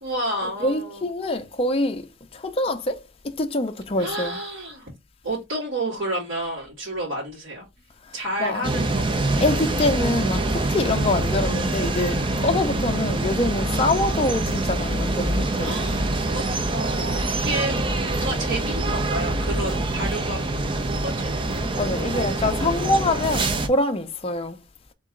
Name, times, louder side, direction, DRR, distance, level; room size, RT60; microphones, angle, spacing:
voice 1, 0.0-1.1 4.0-4.9 5.2-7.7 8.1-9.1 15.6-20.4 21.0-21.4 21.9-22.7, right 1 dB, 75° right, 2.4 m, -30 dB
voice 2, 0.6-2.1 2.3-4.4 8.4-8.7 9.3-15.8 21.8-24.6, left 2 dB, 30° left, 0.5 m, -25 dB
sound 1, 8.6-23.7, right 2 dB, 25° right, 0.5 m, -25 dB
3.7 x 3.0 x 3.8 m
head